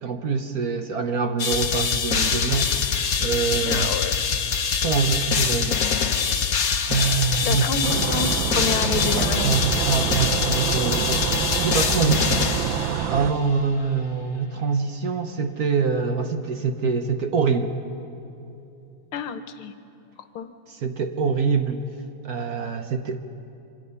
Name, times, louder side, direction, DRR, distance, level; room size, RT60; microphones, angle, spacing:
voice 1, 0.0-3.9 4.8-6.2 6.9-7.7 9.2-12.7 13.1-17.7 20.7-21.8 22.2-23.2, right 5 dB, 55° right, 7 dB, 1.2 m, -25 dB
sound 1, 1.4-13.3, left 6 dB, 50° left, 1.4 m, -24 dB
voice 2, 3.5-4.1 7.4-9.6 19.1-19.7 20.4-20.5, left 6 dB, 85° left, 10 dB, 1.9 m, -29 dB
sound 2, 7.8-13.3, right 10 dB, 70° right, 1.4 m, -27 dB
26.0 x 25.0 x 5.6 m, 2.8 s
omnidirectional pair, 2.3 m